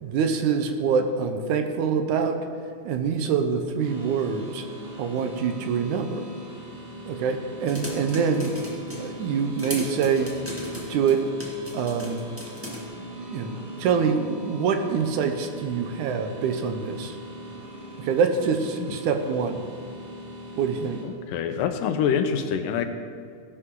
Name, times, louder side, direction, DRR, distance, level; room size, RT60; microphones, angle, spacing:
voice 1, 0.0-2.4 2.8-4.6 5.0-6.2 7.0-8.5 9.0-10.3 10.9-11.3 11.7-12.2 13.3-17.2 18.0-19.6 20.6-21.3, right 6 dB, 75° right, 6 dB, 2.2 m, -25 dB
sound 1, 3.8-21.0, equal, 60° right, 4.7 m, -40 dB
sound 2, 7.7-9.1 9.6-12.8, equal, 5° right, 1.2 m, -37 dB
voice 2, 21.3-22.9, left 7 dB, 85° left, 8 dB, 2.4 m, -25 dB
17.5 x 11.5 x 3.8 m, 2.2 s
omnidirectional pair, 3.8 m